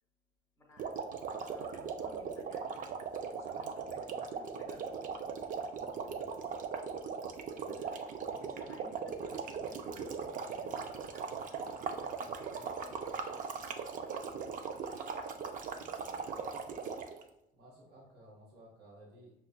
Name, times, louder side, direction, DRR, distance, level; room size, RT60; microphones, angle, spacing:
voice 1, 0.6-1.0 1.3-2.7 3.3-5.3 7.6-13.7, equal, 15° left, -1 dB, 0.8 m, -57 dB
sound 1, 0.8-17.2, right 6 dB, 50° right, 0.4 m, -39 dB
voice 2, 5.8-6.5 15.7-16.4 17.5-19.3, right 1 dB, 80° right, -6 dB, 1.2 m, -58 dB
5.5 x 2.3 x 2.2 m, 0.85 s
cardioid pair, 110°, 17 cm